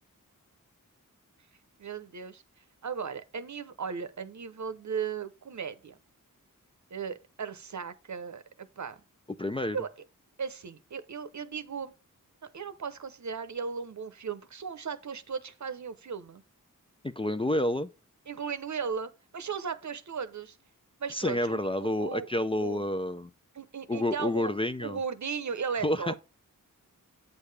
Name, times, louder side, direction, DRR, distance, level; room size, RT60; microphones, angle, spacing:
voice 1, 1.8-2.4 2.8-6.0 6.9-9.0 9.7-9.9 10.4-11.9 12.5-16.4 18.3-20.6 21.0-22.3 22.6-22.8 23.5-24.5 24.8-26.2, right 6 dB, 55° right, 0.8 m, -36 dB
voice 2, 9.4-9.8 17.0-17.9 21.1-23.3 23.9-25.0 25.8-26.2, left 1 dB, 15° left, 0.4 m, -29 dB
8.4 x 6.6 x 3.3 m
wide cardioid pair, 85°, 33 cm